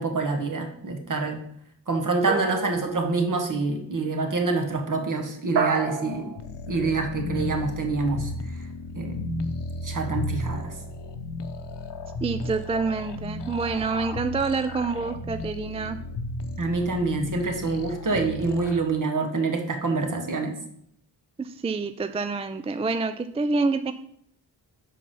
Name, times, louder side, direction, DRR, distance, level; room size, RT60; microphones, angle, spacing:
voice 1, 0.0-1.4 1.9-6.3 6.7-8.3 8.9-9.2 9.8-10.7 16.6-20.6, right 3 dB, 45° right, 4 dB, 1.5 m, -26 dB
sound 1, 2.3-3.3 5.6-6.4, right 5 dB, 60° right, 1.2 m, -28 dB
sound 2, 6.4-18.8, left 1 dB, 65° left, 0.8 m, -34 dB
voice 2, 12.2-16.0 21.4-23.9, right 4 dB, 15° right, 10 dB, 0.3 m, -27 dB
5.6 x 4.7 x 5.3 m, 0.68 s
cardioid pair, 50°, 44 cm